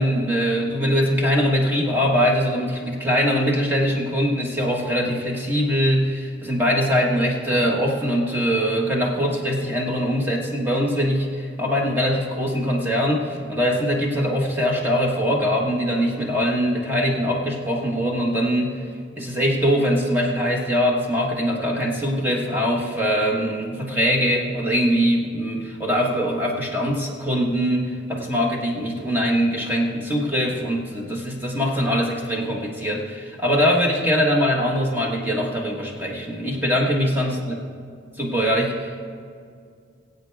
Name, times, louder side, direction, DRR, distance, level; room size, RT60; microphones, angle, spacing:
voice 1, 0.0-18.8 19.2-37.6 38.2-39.1, equal, 10° right, -2 dB, 1.4 m, -22 dB
22.0 x 8.1 x 3.5 m, 2.2 s
head